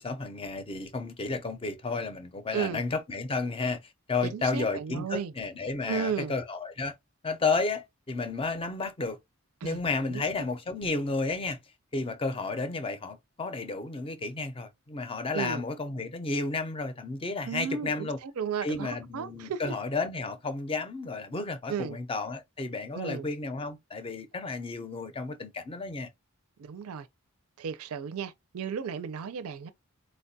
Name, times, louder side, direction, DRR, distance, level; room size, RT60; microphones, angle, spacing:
voice 1, 0.0-6.9 7.2-9.2 9.6-11.6 11.9-18.2 18.6-26.1, left 3 dB, 25° left, 0.5 m, -32 dB
voice 2, 4.3-5.3 5.9-6.3 9.6-9.8 10.1-10.2 15.3-15.6 17.4-19.7 21.7-22.0 22.9-23.3 26.6-27.1 27.6-29.7, right 6 dB, 85° right, 0.4 m, -34 dB
4.2 x 2.2 x 2.6 m
head